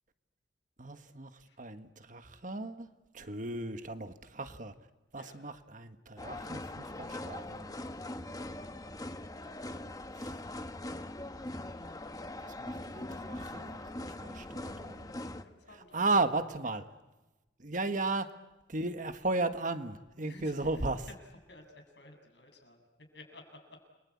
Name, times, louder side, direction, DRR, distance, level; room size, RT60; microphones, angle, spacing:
voice 1, 0.8-1.3 1.6-2.9 3.1-4.7 5.1-7.7 10.2-10.3 12.4-15.1 15.9-16.8 17.6-18.3 18.7-21.0, right 3 dB, 45° right, 9 dB, 1.5 m, -35 dB
sound 1, 6.2-15.4, left 1 dB, 20° left, 1.2 m, -41 dB
voice 2, 15.4-16.3 16.6-16.8 20.2-21.1 21.5-23.8, left 2 dB, 70° left, 5 dB, 7.2 m, -54 dB
29.5 x 23.0 x 8.6 m, 1.1 s
head